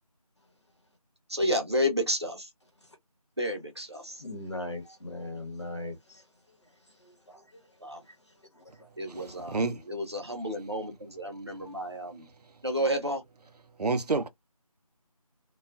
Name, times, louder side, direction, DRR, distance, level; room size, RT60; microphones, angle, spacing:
voice 1, 1.3-2.5 3.4-4.2 7.8-8.0 9.0-12.3 12.6-13.2, equal, 45° right, 0.7 m, -31 dB
voice 2, 4.2-6.0 7.3-7.4 11.6-11.7, left 2 dB, 45° left, 1.0 m, -38 dB
voice 3, 9.1-9.8 13.8-14.3, right 3 dB, 80° right, 0.5 m, -29 dB
2.3 x 2.3 x 2.3 m
figure-of-eight pair, 175°, 20 cm